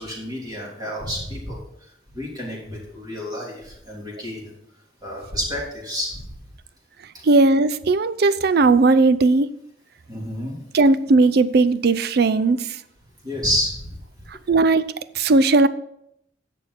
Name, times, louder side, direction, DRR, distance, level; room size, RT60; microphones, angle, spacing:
voice 1, 0.0-1.6 2.1-4.5 5.0-6.3 7.1-7.3 10.1-10.5 13.2-14.0, equal, 25° right, -4 dB, 3.3 m, -29 dB
voice 2, 7.2-9.5 10.7-12.8 14.5-15.7, right 3 dB, 60° right, 14 dB, 0.5 m, -17 dB
11.0 x 7.4 x 4.1 m, 0.74 s
head